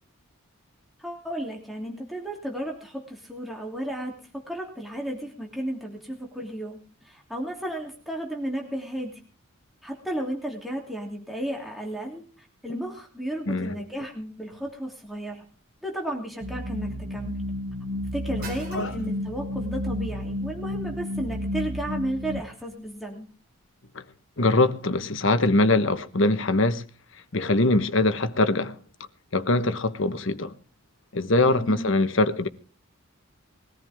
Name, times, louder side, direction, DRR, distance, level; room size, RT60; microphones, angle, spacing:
voice 1, 1.0-4.1 4.5-6.8 7.0-9.2 9.8-15.4 15.8-17.4 18.1-23.3 31.5-31.9, right 1 dB, ahead, 2.9 m, -33 dB
voice 2, 13.5-13.8 18.7-18.9 23.9-24.0 24.4-26.8 27.3-28.8 29.3-30.5 31.1-32.5, left 2 dB, 60° left, 1.1 m, -22 dB
sound 1, 14.8-23.7, right 3 dB, 45° right, 5.0 m, -52 dB
sound 2, 16.4-22.4, left 1 dB, 65° right, 1.2 m, -31 dB
21.5 x 14.0 x 3.6 m
head